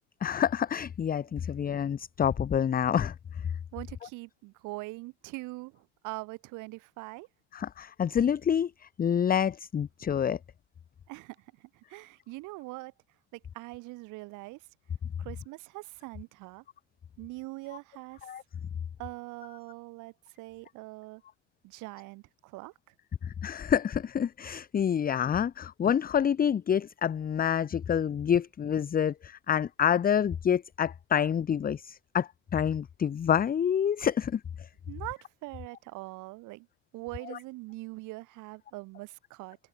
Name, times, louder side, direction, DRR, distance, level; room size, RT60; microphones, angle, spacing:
voice 1, 0.2-3.4 7.5-10.4 18.2-18.4 23.2-34.7 37.3-37.4, left 8 dB, 25° left, 1.0 m, -28 dB
voice 2, 3.7-7.3 11.1-12.9 13.3-14.7 15.2-16.6 17.2-18.3 19.0-21.2 21.6-22.7 34.9-36.7 36.9-39.6, right 22 dB, 60° right, 4.6 m, -42 dB
hypercardioid pair, 70°, 35 cm